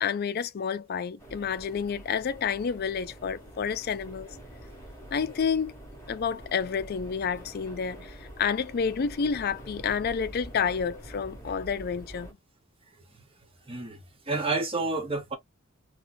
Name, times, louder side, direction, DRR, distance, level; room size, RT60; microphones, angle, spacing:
voice 1, 0.0-4.4 5.1-5.7 6.1-12.3, left 6 dB, 50° left, 0.4 m, -29 dB
sound 1, 1.2-12.3, right 1 dB, 15° left, 1.7 m, -46 dB
voice 2, 13.7-14.0 14.3-15.4, right 3 dB, 30° right, 1.0 m, -29 dB
4.2 x 2.2 x 2.6 m
head